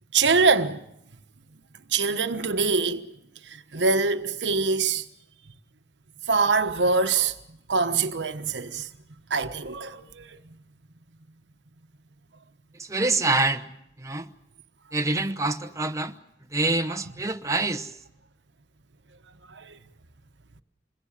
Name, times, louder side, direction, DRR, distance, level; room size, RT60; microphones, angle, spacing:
voice 1, 0.1-0.8 1.9-3.0 3.5-5.0 6.3-7.3 7.7-8.9 9.3-10.3 16.9-17.0 19.5-19.8, right 4 dB, 90° right, 1.2 m, -24 dB
voice 2, 12.9-13.6 14.0-14.2 14.9-16.1 16.5-17.9, right 2 dB, 20° right, 1.0 m, -25 dB
27.0 x 21.5 x 7.5 m
head